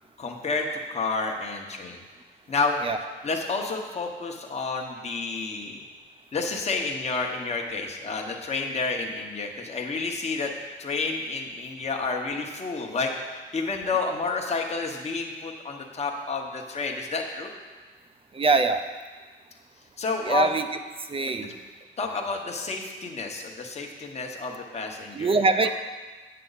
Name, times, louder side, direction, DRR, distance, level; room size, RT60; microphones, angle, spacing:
voice 1, 0.2-2.0 2.5-2.8 3.2-5.8 6.3-10.5 10.8-13.1 13.5-17.5 20.0-20.5 21.4-21.5 22.0-25.7, left 4 dB, 35° left, 1 dB, 1.1 m, -30 dB
voice 2, 18.3-18.8 20.2-20.7 21.1-21.5 25.1-25.7, right 3 dB, 25° right, 8 dB, 0.6 m, -22 dB
8.9 x 6.7 x 4.0 m, 1.4 s
cardioid pair, 90°, 20 cm